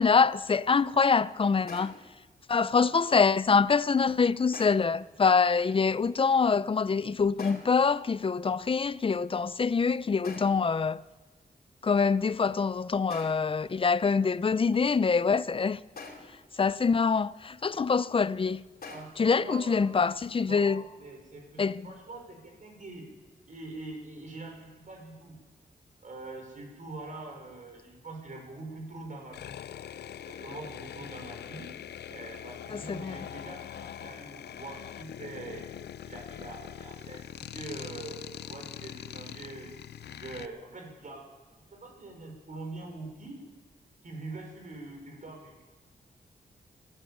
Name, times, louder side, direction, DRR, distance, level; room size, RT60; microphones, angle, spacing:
voice 1, 0.0-1.9 2.5-11.0 11.8-15.8 16.6-18.6 19.2-20.8 21.6-21.9 32.7-33.3, left 5 dB, 35° left, 0.5 m, -25 dB
sound 1, 1.7-2.2 4.5-5.0 7.4-7.9 10.2-10.7 13.1-13.6 16.0-16.5 18.8-19.0, left 4 dB, 65° left, 3.1 m, -45 dB
voice 2, 18.9-19.9 20.4-23.1 23.5-25.4 26.0-29.6 30.3-31.7 32.1-35.7 36.0-41.2 41.7-43.4 44.0-45.6, right 2 dB, 50° right, 5.4 m, -44 dB
sound 2, 29.3-40.5, left 10 dB, 90° left, 0.4 m, -43 dB
14.5 x 11.0 x 8.5 m
wide cardioid pair, 95°, 17 cm